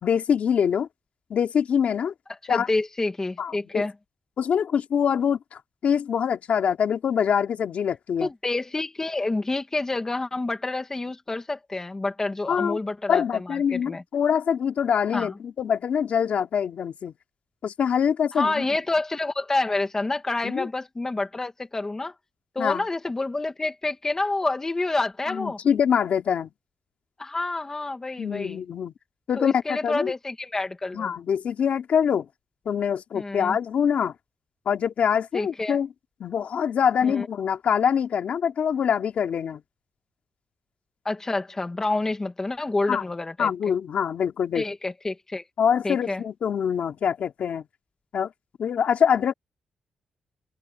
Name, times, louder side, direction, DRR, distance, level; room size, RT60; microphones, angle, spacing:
voice 1, 0.0-0.9 1.3-2.1 2.5-2.7 3.4-3.8 4.4-8.3 12.5-12.8 13.1-17.1 17.6-18.6 20.4-20.7 22.6-22.9 25.3-26.5 28.2-28.9 29.3-30.1 30.9-32.3 32.6-34.1 34.7-35.9 36.2-39.6 42.9-43.0 43.4-44.6 45.6-47.6 48.1-48.3 48.6-49.3, left 7 dB, 65° left, 2.7 m, -24 dB
voice 2, 2.4-3.9 8.2-14.0 15.1-15.3 18.3-22.1 22.6-25.6 27.2-28.6 29.4-31.1 33.1-33.6 35.3-35.8 37.0-37.3 41.1-43.5 44.5-45.4 45.8-46.2, left 2 dB, 20° left, 2.0 m, -28 dB
open air
wide cardioid pair, 130°, 3 cm